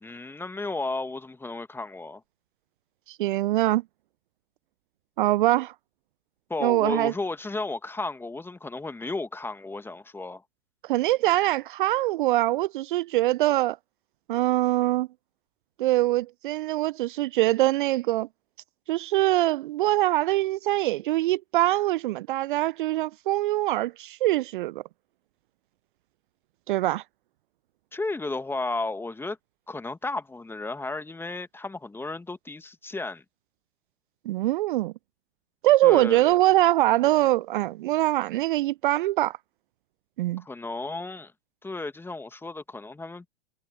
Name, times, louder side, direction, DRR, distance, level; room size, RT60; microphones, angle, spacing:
voice 1, 0.0-2.2 6.5-10.4 27.9-29.4 29.7-33.2 35.8-36.4 40.4-41.3 41.6-43.3, left 3 dB, 5° left, 1.8 m, -33 dB
voice 2, 3.1-3.8 5.2-5.7 6.6-7.1 10.8-13.8 14.3-15.1 15.8-18.3 18.9-24.8 26.7-27.0 34.3-34.9 35.6-39.4 40.2-40.4, right 16 dB, 50° right, 0.7 m, -23 dB
figure-of-eight pair, 100°, 33 cm